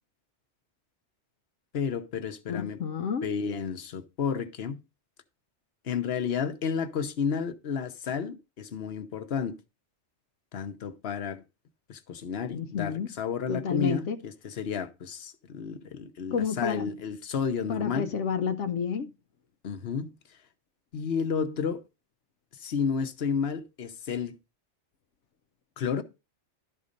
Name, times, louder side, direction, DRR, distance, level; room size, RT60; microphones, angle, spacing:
voice 1, 1.7-2.8 3.2-4.8 5.8-9.6 10.5-11.4 11.9-18.1 19.6-20.1 20.9-21.8 22.6-24.4 25.8-26.0, left 6 dB, 60° left, 1.2 m, -31 dB
voice 2, 2.5-3.3 12.5-13.1 13.5-14.2 16.3-16.9 17.7-19.1, left 6 dB, 85° left, 1.0 m, -30 dB
12.0 x 4.2 x 5.2 m
omnidirectional pair, 1.2 m